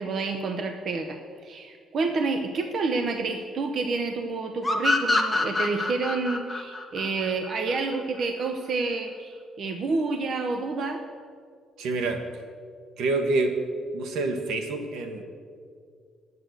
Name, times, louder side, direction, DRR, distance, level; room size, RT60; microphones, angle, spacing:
voice 1, 0.0-11.0, right 3 dB, 45° right, 6 dB, 0.8 m, -29 dB
sound 1, 4.6-8.0, left 2 dB, 10° left, 1.0 m, -26 dB
voice 2, 11.8-12.2 13.0-13.6 13.9-15.2, right 3 dB, 75° right, 6 dB, 1.3 m, -27 dB
9.6 x 8.2 x 7.8 m, 2.1 s
cardioid pair, 145°, 0 cm